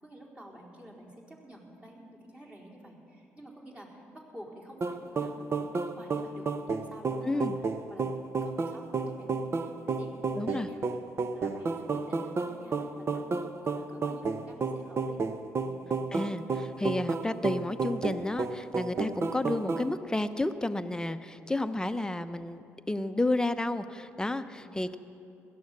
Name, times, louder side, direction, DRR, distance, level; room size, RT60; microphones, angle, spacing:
voice 1, 0.0-7.5 7.9-8.1 8.4-10.1 10.4-11.0 11.3-13.4 13.6-15.3 15.6-16.0 24.3-24.8, right 1 dB, 15° right, -4 dB, 4.4 m, -50 dB
sound 1, 4.8-19.9, right 4 dB, 45° right, 0.9 m, -32 dB
voice 2, 7.2-7.6 10.4-10.7 16.1-25.0, left 2 dB, 10° left, 10 dB, 0.8 m, -31 dB
17.0 x 13.0 x 6.7 m, 2.8 s
hypercardioid pair, 50°, 6 cm